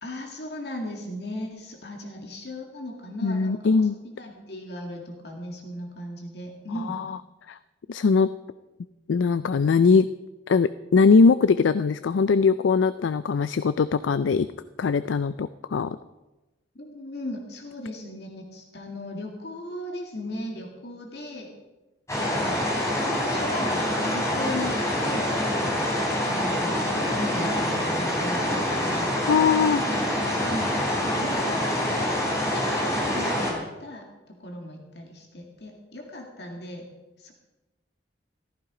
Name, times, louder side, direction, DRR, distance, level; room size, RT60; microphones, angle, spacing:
voice 1, 0.0-3.9 4.1-6.9 16.8-21.6 22.2-22.7 22.9-25.3 26.2-29.1 29.4-29.7 30.4-32.1 32.5-34.0 34.4-36.9 37.2-37.3, left 1 dB, 60° left, 1 dB, 2.1 m, -37 dB
voice 2, 3.2-4.0 6.8-7.2 7.5-7.6 7.9-8.3 9.1-10.1 10.5-14.5 14.8-16.0 22.2-22.3 29.3-29.8, left 5 dB, 80° left, 14 dB, 0.4 m, -21 dB
sound 1, 22.1-33.5, left 1 dB, 15° left, 3.4 m, -26 dB
14.5 x 14.0 x 4.9 m, 1.1 s
head